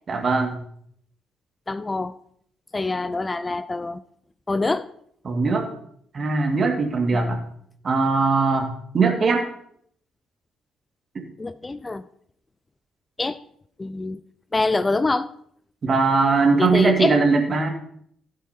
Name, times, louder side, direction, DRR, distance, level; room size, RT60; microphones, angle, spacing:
voice 1, 0.1-0.6 5.2-5.7 6.1-7.4 7.8-9.5 11.2-11.3 15.8-17.7, right 4 dB, 40° right, 3 dB, 2.1 m, -20 dB
voice 2, 1.7-2.1 2.7-4.0 4.5-4.9 11.4-12.0 13.2-13.4 13.8-14.2 14.5-15.3 16.6-17.2, left 3 dB, 25° left, 14 dB, 0.5 m, -25 dB
15.5 x 7.8 x 2.9 m, 0.67 s
figure-of-eight pair, 45°, 0 cm